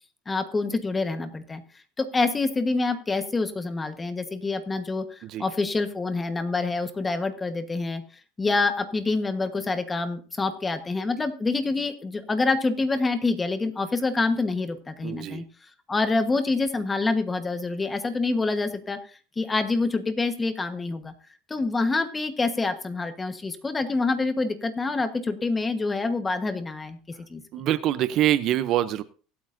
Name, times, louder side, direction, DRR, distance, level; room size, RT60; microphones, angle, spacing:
voice 1, 0.3-1.6 2.0-8.0 8.4-15.4 15.9-21.1 21.5-27.4, left 3 dB, 15° left, 8 dB, 1.2 m, -26 dB
voice 2, 15.0-15.4 27.5-29.0, right 12 dB, 45° right, 15 dB, 0.6 m, -24 dB
24.0 x 8.6 x 2.6 m, 0.39 s
cardioid pair, 145°, 0 cm